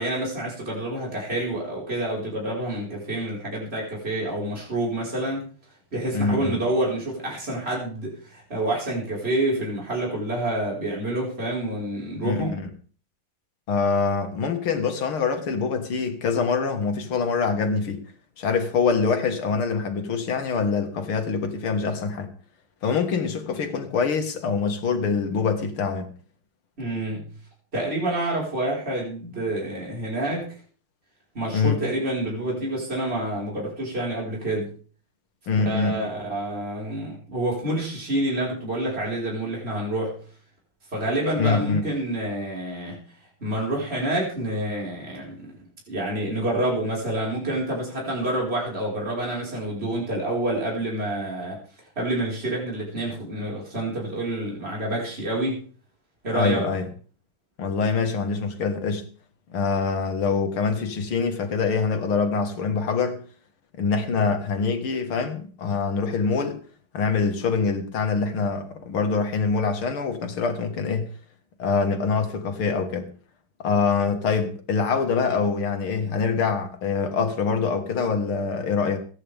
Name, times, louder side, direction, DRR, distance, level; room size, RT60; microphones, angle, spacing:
voice 1, 0.0-5.4 5.9-12.5 26.8-27.3 27.7-30.5 31.3-34.7 35.7-40.2 40.9-43.0 43.4-45.5 45.9-51.6 52.0-55.6 56.2-56.6, right 1 dB, 30° right, 5.3 m, -28 dB
voice 2, 6.1-6.6 12.2-12.7 13.7-18.1 18.4-22.3 22.8-26.1 31.5-31.8 35.5-36.1 41.4-41.9 56.3-56.9 57.6-59.0 59.5-63.2 63.8-66.6 66.9-71.1 71.6-73.1 73.6-79.0, left 5 dB, 85° left, 2.7 m, -24 dB
26.5 x 10.0 x 3.6 m
omnidirectional pair, 2.3 m